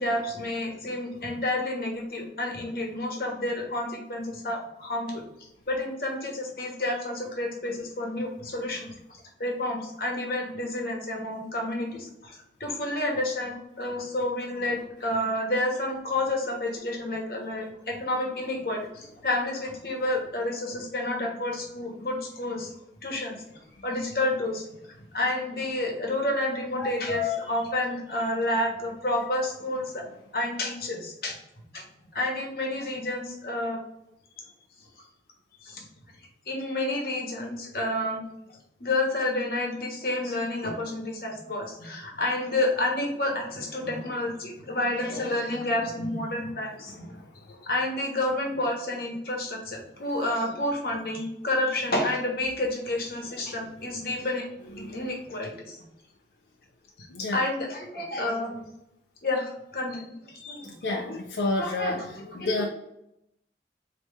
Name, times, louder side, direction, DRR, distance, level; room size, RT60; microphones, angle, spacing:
voice 1, 0.0-5.2 5.7-22.7 23.0-23.4 23.8-24.7 25.1-30.0 30.3-31.4 31.7-31.8 32.1-33.8 35.6-35.9 36.5-38.2 38.8-47.2 47.6-54.4 54.8-55.8 57.0-57.1 57.3-58.6 59.2-61.2 61.6-62.7, left 1 dB, 55° left, 0 dB, 1.1 m, -30 dB
voice 2, 26.8-27.4 54.8-54.9 57.1-57.4 60.8-62.0 62.3-62.7, left 3 dB, 85° left, 1 dB, 0.5 m, -29 dB
4.3 x 3.0 x 3.3 m, 0.83 s
head